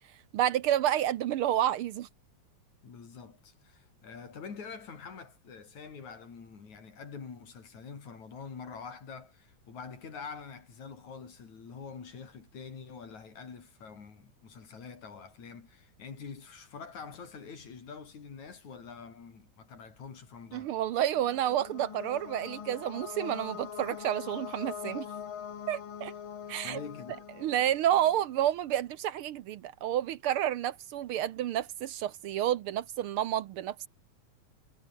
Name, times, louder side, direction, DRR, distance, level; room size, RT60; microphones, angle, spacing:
voice 1, 0.3-2.1 20.5-25.1 25.7-26.1 26.5-26.8 27.4-33.9, right 11 dB, 75° right, 1.2 m, -30 dB
voice 2, 2.8-20.7 26.6-27.3, left 5 dB, 75° left, 5.2 m, -46 dB
sound 1, 20.7-28.5, left 8 dB, 50° left, 2.1 m, -43 dB
omnidirectional pair, 3.3 m